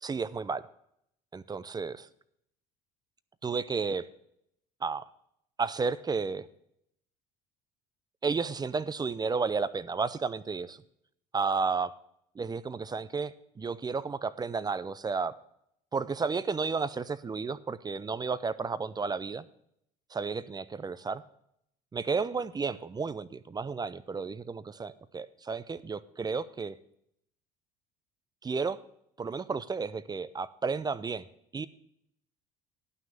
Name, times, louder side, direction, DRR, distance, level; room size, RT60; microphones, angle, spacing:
voice 1, 0.0-0.6 1.3-2.1 3.4-4.1 4.8-5.0 5.6-6.5 8.2-10.8 11.3-11.9 12.4-15.3 15.9-19.5 20.1-21.2 21.9-26.8 28.4-28.8 29.2-31.3 31.5-31.7, right 4 dB, 20° right, 17 dB, 0.5 m, -32 dB
11.5 x 6.1 x 6.7 m, 0.73 s
hypercardioid pair, 75°, 21 cm